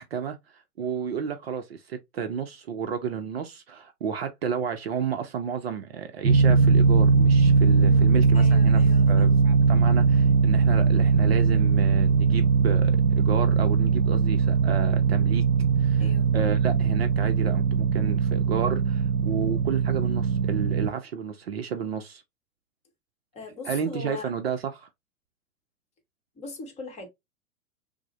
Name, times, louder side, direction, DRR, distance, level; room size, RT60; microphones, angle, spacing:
voice 1, 0.0-8.8 9.1-15.4 15.8-16.1 16.3-22.2 23.6-24.9, right 7 dB, 45° right, 0.6 m, -32 dB
sound 1, 6.2-20.9, right 5 dB, 85° right, 0.6 m, -20 dB
voice 2, 7.8-9.4 16.0-16.3 23.3-24.3 26.4-27.1, left 3 dB, 15° left, 1.0 m, -40 dB
5.9 x 2.1 x 2.9 m
figure-of-eight pair, 105°, 45 cm